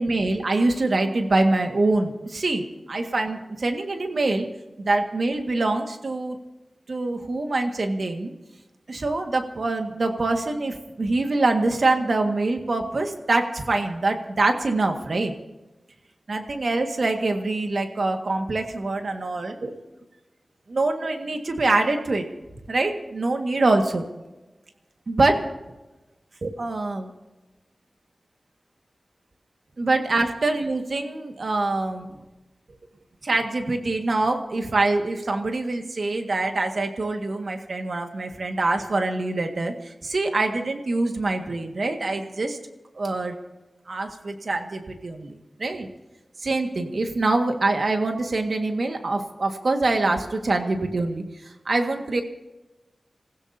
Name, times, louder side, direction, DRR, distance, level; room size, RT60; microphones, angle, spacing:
voice 1, 0.0-4.5 4.8-6.4 6.9-8.3 8.9-15.3 16.3-19.7 20.7-22.3 22.7-24.0 25.1-25.4 26.4-27.1 29.8-32.1 33.2-42.6 43.0-43.4 43.9-45.9 46.4-51.2 51.7-52.2, right 2 dB, 75° right, 4 dB, 1.9 m, -24 dB
27.0 x 16.0 x 2.8 m, 1.1 s
wide cardioid pair, 55°, 0 cm